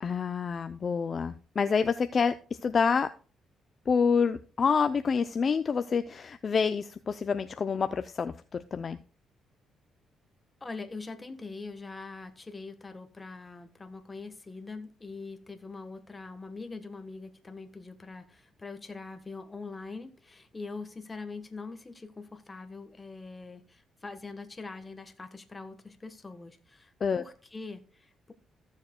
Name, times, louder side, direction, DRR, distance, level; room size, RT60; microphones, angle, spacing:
voice 1, 0.0-3.1 3.9-9.0 27.0-27.2, left 5 dB, 45° left, 0.5 m, -27 dB
voice 2, 10.6-28.3, left 3 dB, 25° left, 1.3 m, -43 dB
15.0 x 7.3 x 2.2 m
cardioid pair, 90°, 0 cm